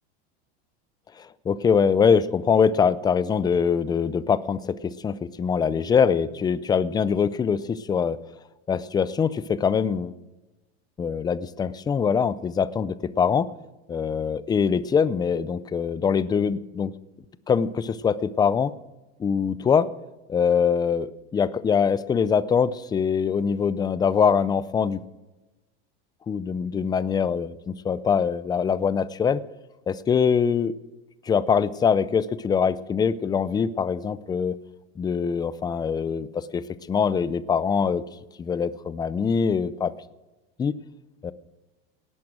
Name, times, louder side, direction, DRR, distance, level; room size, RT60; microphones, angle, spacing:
voice 1, 1.5-8.2 8.7-10.2 11.0-13.5 13.9-16.9 17.5-18.7 19.2-19.9 20.3-25.0 26.3-29.4 29.9-30.7 31.3-34.6 35.0-38.0 38.4-39.9 40.6-40.7 41.2-41.3, left 6 dB, 15° left, 17 dB, 0.4 m, -23 dB
18.0 x 11.0 x 6.3 m, 1.1 s
supercardioid pair, 140°, 31 cm